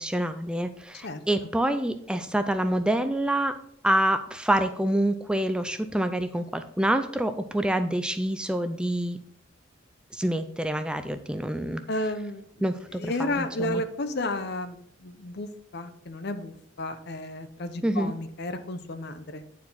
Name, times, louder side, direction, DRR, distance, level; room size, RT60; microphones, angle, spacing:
voice 1, 0.0-3.6 3.8-9.2 10.1-11.8 12.6-13.8 17.8-18.1, right 1 dB, 5° right, 9 dB, 0.4 m, -27 dB
voice 2, 11.9-12.7 12.9-19.4, left 1 dB, 55° left, 10 dB, 0.8 m, -32 dB
9.5 x 4.7 x 5.6 m, 0.72 s
head